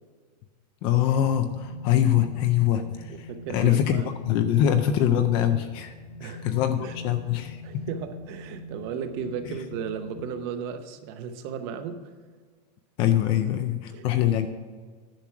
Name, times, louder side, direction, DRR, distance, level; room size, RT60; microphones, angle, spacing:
voice 1, 0.8-5.9 6.2-7.6 9.4-9.5 13.0-14.5, left 11 dB, 25° left, 0.3 m, -24 dB
sound 1, 1.5-10.3, left 3 dB, 70° left, 2.1 m, -42 dB
voice 2, 3.1-4.1 6.2-6.5 6.8-7.0 7.6-12.1 13.9-14.1, right 7 dB, 35° right, 0.8 m, -35 dB
10.5 x 6.2 x 5.8 m
supercardioid pair, 170°, 21 cm